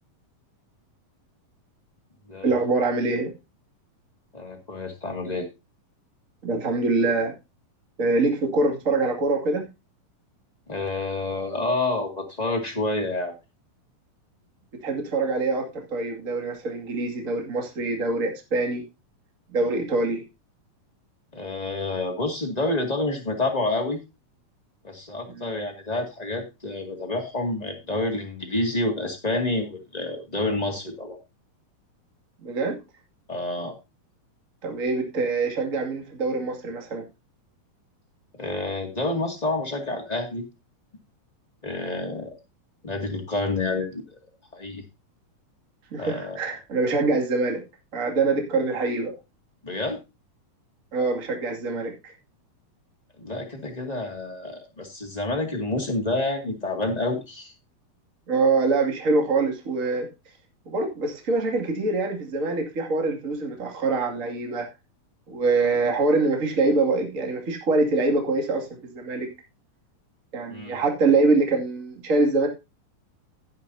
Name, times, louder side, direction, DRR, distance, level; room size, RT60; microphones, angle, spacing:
voice 1, 2.4-3.3 6.4-7.3 8.0-9.7 14.8-18.8 19.5-20.2 25.3-25.5 32.4-32.7 34.6-37.0 45.9-47.6 47.9-49.1 50.9-52.1 58.3-60.1 60.7-64.7 65.3-68.7 68.9-69.3 70.3-72.5, right 3 dB, 25° right, 2 dB, 2.3 m, -24 dB
voice 2, 4.3-5.5 10.7-13.3 21.3-24.0 24.8-31.2 33.3-33.7 38.4-40.4 41.6-42.3 42.8-44.0 44.5-44.8 46.0-46.4 49.6-50.0 53.2-57.5 70.5-70.8, left 2 dB, 15° left, 1 dB, 1.6 m, -28 dB
16.5 x 7.6 x 2.8 m, 0.26 s
omnidirectional pair, 4.0 m